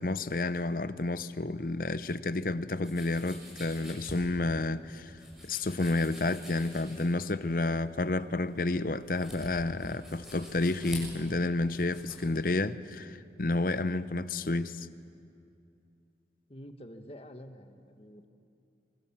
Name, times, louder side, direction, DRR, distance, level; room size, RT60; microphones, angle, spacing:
voice 1, 0.0-14.9, left 2 dB, 50° left, 14 dB, 0.7 m, -30 dB
sound 1, 2.8-12.2, equal, 5° right, 6.7 m, -48 dB
voice 2, 16.5-18.3, equal, 35° left, 7 dB, 1.4 m, -48 dB
25.5 x 24.0 x 7.4 m, 2.5 s
head